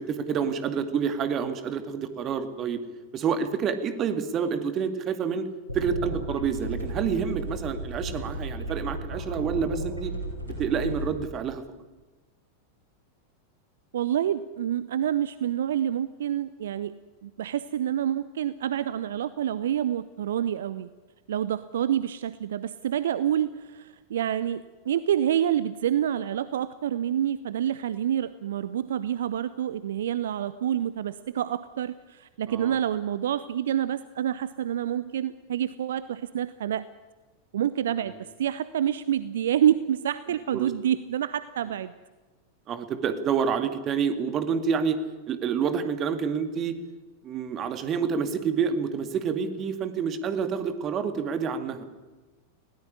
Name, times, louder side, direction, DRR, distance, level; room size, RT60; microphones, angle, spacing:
voice 1, 0.0-2.8 3.1-5.5 5.7-10.1 10.6-11.6 32.5-32.8 38.1-38.2 40.5-40.7 42.7-45.0 45.3-46.8 47.2-51.8, right 6 dB, 30° right, 9 dB, 2.1 m, -28 dB
sound 1, 5.7-11.1, right 1 dB, 85° right, 7.6 m, -34 dB
voice 2, 13.9-17.0 17.2-20.9 21.3-36.8 37.5-41.9, right 10 dB, 60° right, 16 dB, 0.7 m, -27 dB
20.0 x 17.5 x 9.9 m, 1.2 s
figure-of-eight pair, 90°, 0 cm